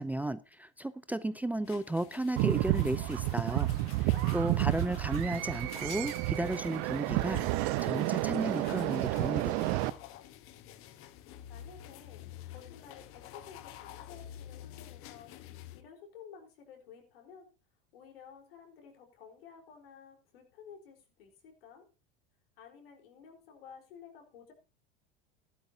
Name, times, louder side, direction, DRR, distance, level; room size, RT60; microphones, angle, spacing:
voice 1, 0.0-3.7 4.0-9.8, right 1 dB, 5° right, 14 dB, 0.5 m, -34 dB
sound 1, 1.6-15.8, left 12 dB, 50° left, 1.2 m, -50 dB
sound 2, 2.4-9.9, right 17 dB, 60° right, 0.8 m, -31 dB
voice 2, 4.1-4.5 11.5-15.3 15.7-17.5 17.9-21.9 22.6-24.5, left 7 dB, 80° left, 3 dB, 4.3 m, -53 dB
14.5 x 12.0 x 2.8 m, 0.31 s
hypercardioid pair, 100°, 29 cm